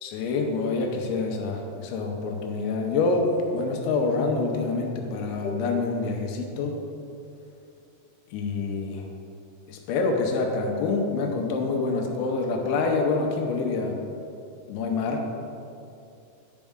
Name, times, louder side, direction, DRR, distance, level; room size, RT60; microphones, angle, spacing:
voice 1, 0.0-6.8 8.3-9.1 9.7-14.0 14.7-15.3, left 3 dB, 80° left, 2 dB, 2.9 m, -26 dB
9.9 x 5.2 x 3.6 m, 2.6 s
omnidirectional pair, 5.4 m